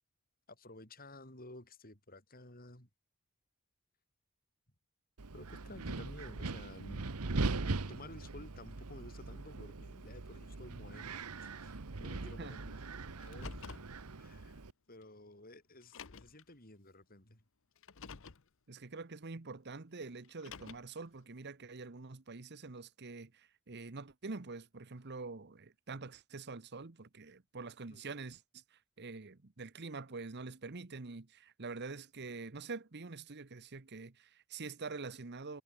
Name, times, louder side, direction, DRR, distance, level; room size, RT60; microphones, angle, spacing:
voice 1, 0.5-2.9 5.3-7.0 7.6-11.1 11.4-12.8 13.2-13.6 14.2-17.4 27.9-28.1, left 1 dB, 40° left, 6.8 m, -53 dB
Wind, 5.2-14.7, right 3 dB, 85° right, 1.1 m, -40 dB
Car, 13.2-13.9 15.0-15.1 15.8-16.4 17.8-18.4 20.2-21.0, left 5 dB, 60° left, 0.9 m, -49 dB
voice 2, 18.7-35.6, right 3 dB, 50° right, 1.0 m, -46 dB
head